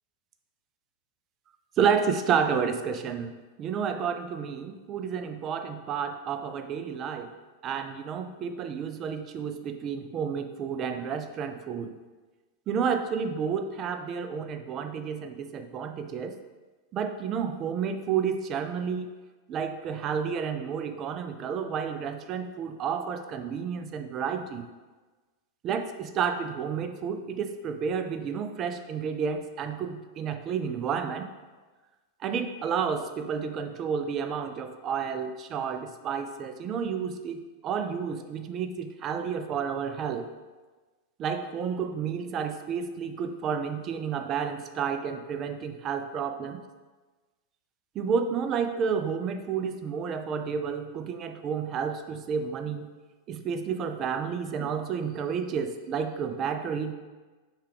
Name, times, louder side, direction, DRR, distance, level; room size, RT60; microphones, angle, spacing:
voice 1, 1.8-7.3 7.6-11.9 12.7-16.4 16.9-19.1 19.5-24.6 25.6-31.3 32.2-40.3 41.2-46.6 47.9-52.9 53.3-56.9, right 6 dB, 35° right, 7 dB, 0.3 m, -30 dB
5.4 x 2.3 x 3.4 m, 1.3 s
figure-of-eight pair, 90°, 0 cm